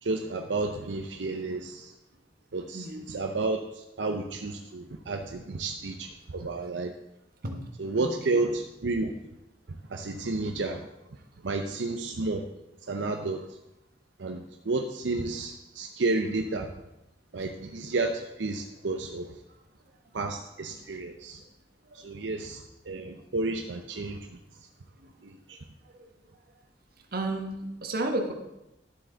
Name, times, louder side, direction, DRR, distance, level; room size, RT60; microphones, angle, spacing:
voice 1, 0.0-1.9 2.5-6.9 7.8-9.1 9.9-10.9 11.4-12.4 12.9-13.4 14.2-16.7 17.3-19.4 20.1-21.4 21.9-24.4 25.2-25.6, right 3 dB, 85° right, 4 dB, 0.7 m, -31 dB
voice 2, 2.7-3.1 7.4-7.6 8.0-8.4 22.4-22.5 25.9-26.0 27.1-28.3, right 2 dB, 55° right, 4 dB, 1.3 m, -32 dB
11.5 x 7.6 x 3.9 m, 0.92 s
head